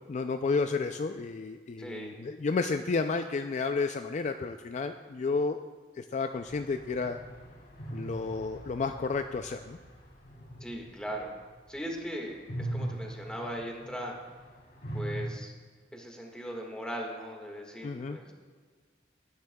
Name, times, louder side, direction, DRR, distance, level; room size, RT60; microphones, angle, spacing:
voice 1, 0.1-5.6 6.0-7.2 7.9-9.8 17.8-18.2, left 4 dB, 40° left, 7 dB, 0.4 m, -31 dB
voice 2, 1.8-2.2 10.6-11.3 11.7-14.2 14.9-15.5 15.9-18.3, equal, 5° left, 0 dB, 1.7 m, -39 dB
sound 1, 6.3-12.0 12.3-15.3, right 1 dB, 60° left, 2.8 m, -41 dB
18.0 x 10.5 x 2.3 m, 1.5 s
head